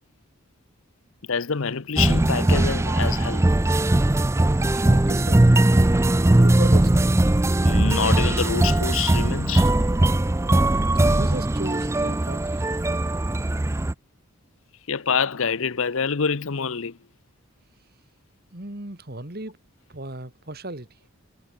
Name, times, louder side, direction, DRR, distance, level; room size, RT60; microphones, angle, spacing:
voice 1, 1.3-3.5 7.6-9.7 14.9-17.0, left 6 dB, 65° left, 0.8 m, -26 dB
sound 1, 2.0-13.9, right 1 dB, 10° right, 0.4 m, -20 dB
voice 2, 4.7-5.7 6.3-7.1 11.1-12.7 18.5-19.6 19.9-20.9, right 1 dB, 45° right, 2.2 m, -35 dB
head